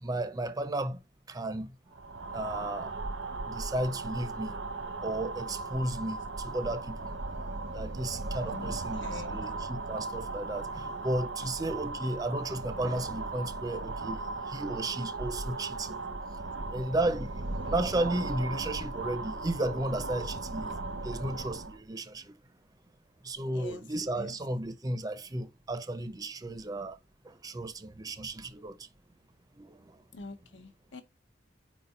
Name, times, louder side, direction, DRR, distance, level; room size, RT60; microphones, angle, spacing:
voice 1, 0.0-1.0 1.3-1.7 2.3-2.9 3.5-4.5 5.0-6.9 7.7-16.0 16.7-22.3 23.2-27.0 27.2-28.8 29.6-30.0, right 1 dB, 20° right, 0.5 m, -34 dB
sound 1, 1.9-21.8, right 3 dB, 90° right, 0.9 m, -37 dB
voice 2, 9.0-9.4 11.4-11.5 23.5-23.8 24.2-24.3 30.1-31.0, left 4 dB, 80° left, 0.9 m, -44 dB
4.6 x 4.1 x 5.4 m
head